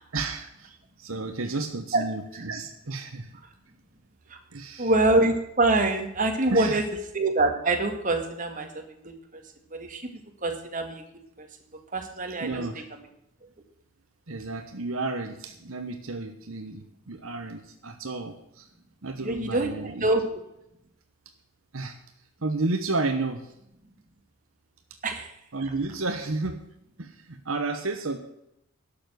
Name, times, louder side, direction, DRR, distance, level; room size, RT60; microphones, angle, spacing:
voice 1, 0.1-0.7 1.0-3.3 4.5-4.9 6.5-6.8 12.4-12.8 14.3-18.7 19.0-20.1 21.7-22.0 22.4-23.5 25.5-26.6 27.0-28.2, right 3 dB, 70° right, 6 dB, 1.1 m, -32 dB
voice 2, 4.8-6.8 7.1-9.4 9.7-10.1 10.4-11.0 11.4-11.5 11.9-12.7 19.2-20.3 25.0-25.3, right 2 dB, 35° right, 4 dB, 2.0 m, -25 dB
12.0 x 7.1 x 9.3 m, 0.82 s
head